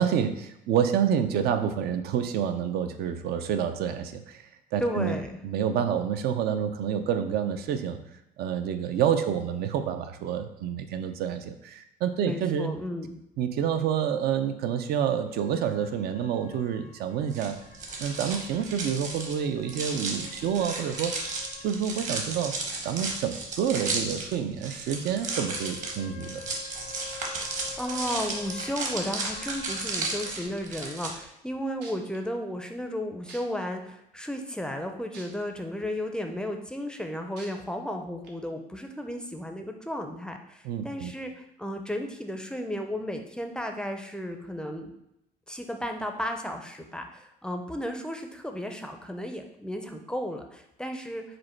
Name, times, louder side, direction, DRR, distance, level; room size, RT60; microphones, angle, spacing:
voice 1, 0.0-5.2 5.4-8.0 8.4-12.7 13.4-17.6 18.0-21.2 21.6-22.6 22.8-26.4 40.6-41.1, right 8 dB, 70° right, 8 dB, 0.4 m, -28 dB
voice 2, 4.8-5.4 12.2-13.2 27.4-44.9 45.5-51.2, equal, 5° left, 4 dB, 0.4 m, -34 dB
sound 1, 15.3-21.8 22.1-22.2 25.3-30.4, left 6 dB, 65° left, 0.5 m, -48 dB
sound 2, 17.3-31.1, right 3 dB, 45° right, 1.0 m, -34 dB
sound 3, 29.2-29.5 30.4-30.5 31.2-31.3 31.8-32.2 33.3-33.4 35.1-35.2 35.8-35.9 37.4-37.5 38.2-38.3, right 4 dB, 85° right, 0.8 m, -45 dB
5.1 x 2.1 x 4.3 m, 0.81 s
cardioid pair, 110°, 17 cm